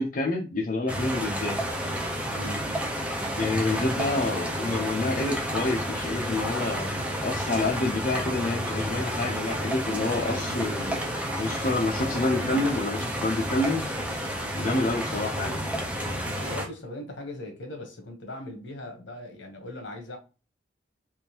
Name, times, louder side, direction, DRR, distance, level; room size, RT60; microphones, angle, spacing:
voice 1, 0.0-1.8 3.4-6.9 7.2-11.0 11.4-13.8 14.6-15.6, left 2 dB, 45° left, 0.6 m, -28 dB
sound 1, 0.9-16.7, equal, 5° right, 0.5 m, -30 dB
voice 2, 2.3-2.7 3.6-3.9 16.0-20.2, left 1 dB, 75° left, 1.0 m, -39 dB
3.6 x 2.6 x 2.9 m
head